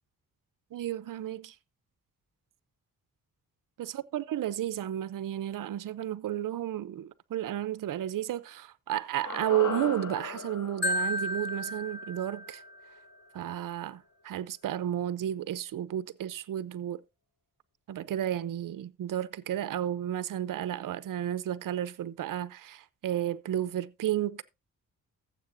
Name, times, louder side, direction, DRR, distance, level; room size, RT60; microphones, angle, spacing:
voice 1, 0.7-1.5 3.8-12.6 13.3-17.0 17.9-24.4, right 11 dB, 70° right, 0.7 m, -32 dB
sound 1, 9.2-13.6 13.8-13.9, left 5 dB, 65° left, 3.3 m, -40 dB
Marimba xylophone, 10.8-12.9, left 1 dB, 30° left, 1.8 m, -33 dB
14.5 x 7.6 x 2.6 m
cardioid pair, 65°, 34 cm